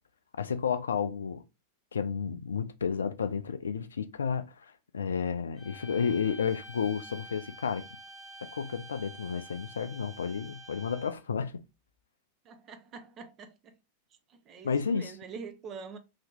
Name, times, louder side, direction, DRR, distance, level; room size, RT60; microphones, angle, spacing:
voice 1, 0.4-1.4 1.9-7.8 8.4-11.5 14.6-15.1, left 6 dB, 70° left, 0.3 m, -31 dB
sound 1, 5.6-11.3, right 1 dB, ahead, 1.3 m, -48 dB
voice 2, 12.4-13.8 14.3-16.0, right 5 dB, 30° right, 0.6 m, -45 dB
2.9 x 2.7 x 3.4 m
figure-of-eight pair, 90°, 0 cm